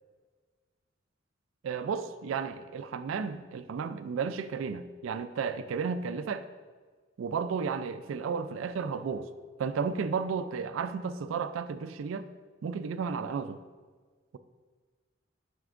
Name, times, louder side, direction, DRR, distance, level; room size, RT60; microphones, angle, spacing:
voice 1, 1.6-6.5 7.2-9.3 9.6-12.3 12.6-13.6, right 5 dB, 85° right, 12 dB, 0.3 m, -33 dB
7.7 x 5.9 x 2.5 m, 1.5 s
head